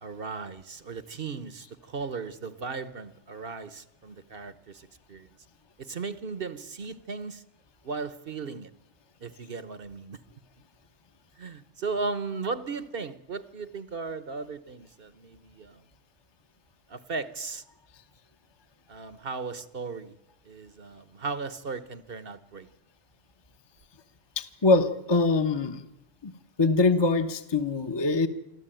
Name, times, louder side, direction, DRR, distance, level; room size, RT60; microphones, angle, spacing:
voice 1, 0.0-5.3 5.8-7.4 7.8-8.7 9.2-10.2 11.4-15.8 16.9-17.6 18.9-20.2 20.5-22.7, right 4 dB, 50° right, 14 dB, 1.1 m, -36 dB
voice 2, 24.4-25.8 26.2-26.3 26.6-28.3, left 3 dB, 25° left, 8 dB, 1.0 m, -23 dB
25.5 x 14.0 x 9.0 m, 0.85 s
omnidirectional pair, 1.2 m